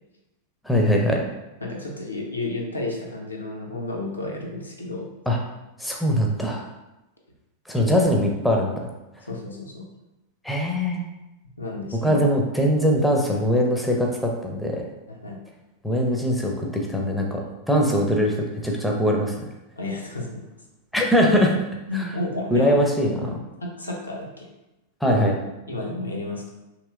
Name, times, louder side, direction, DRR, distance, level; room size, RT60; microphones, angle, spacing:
voice 1, 0.6-1.2 5.3-5.4 5.8-6.7 7.7-8.9 10.4-11.0 12.0-14.9 15.8-19.3 20.9-21.5 21.9-22.1 22.5-23.3 25.0-25.4, equal, 5° left, 0 dB, 0.5 m, -21 dB
voice 2, 1.6-5.1 9.3-9.9 11.6-12.2 15.1-15.4 17.4-17.5 19.8-20.4 21.9-22.8 23.2-24.5 25.1-25.3 25.7-26.5, left 2 dB, 80° left, -1 dB, 0.5 m, -32 dB
3.0 x 2.8 x 2.3 m, 0.97 s
figure-of-eight pair, 90°, 0 cm